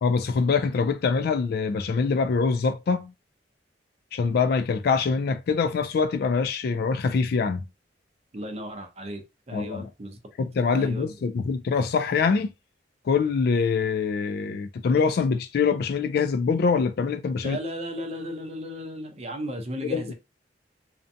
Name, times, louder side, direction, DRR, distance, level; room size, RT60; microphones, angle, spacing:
voice 1, 0.0-3.1 4.1-7.6 9.5-9.9 10.4-12.5 13.1-17.6 19.8-20.1, left 5 dB, 60° left, 0.3 m, -24 dB
voice 2, 8.3-9.2 9.5-10.2 10.7-11.1 17.4-20.1, equal, 35° right, 0.5 m, -35 dB
2.6 x 2.2 x 2.6 m
head